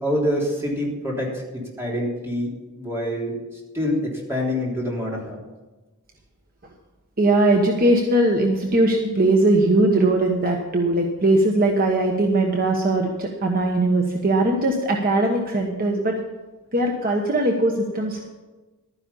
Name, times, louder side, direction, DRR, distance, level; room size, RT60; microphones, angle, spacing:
voice 1, 0.0-2.5 2.8-3.3 3.7-5.4, left 1 dB, 10° right, -4 dB, 3.3 m, -26 dB
voice 2, 7.2-16.2 16.7-18.3, right 2 dB, 40° right, 1 dB, 1.2 m, -20 dB
12.5 x 10.0 x 5.5 m, 1.2 s
head